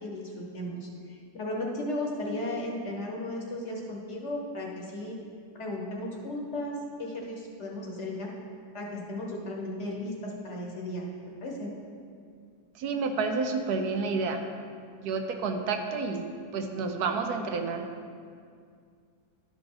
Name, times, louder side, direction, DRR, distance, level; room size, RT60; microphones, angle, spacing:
voice 1, 0.0-5.2 5.5-8.3 8.7-11.0 11.4-11.7, left 1 dB, 50° left, -1 dB, 1.2 m, -35 dB
voice 2, 12.7-14.4 15.0-16.3 16.5-17.9, right 4 dB, 75° right, 5 dB, 1.1 m, -30 dB
12.0 x 4.9 x 3.8 m, 2.2 s
omnidirectional pair, 1.7 m